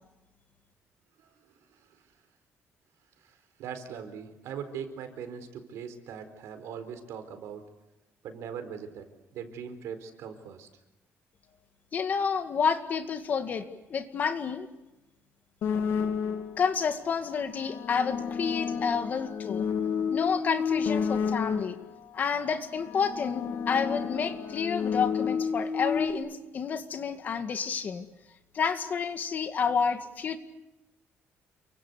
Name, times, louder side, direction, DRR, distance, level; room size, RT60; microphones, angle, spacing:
voice 1, 1.2-2.0 3.2-7.6 8.2-10.7, right 7 dB, 85° right, 9 dB, 4.4 m, -41 dB
voice 2, 11.9-13.6 13.9-14.7 16.6-19.7 20.1-21.8 22.1-28.1 28.5-30.4, left 6 dB, 40° left, 8 dB, 2.1 m, -29 dB
sound 1, 15.6-16.7 17.5-22.0 22.7-26.1, left 6 dB, 65° left, 2.6 m, -31 dB
29.5 x 24.0 x 8.2 m, 0.98 s
cardioid pair, 170°, 5 cm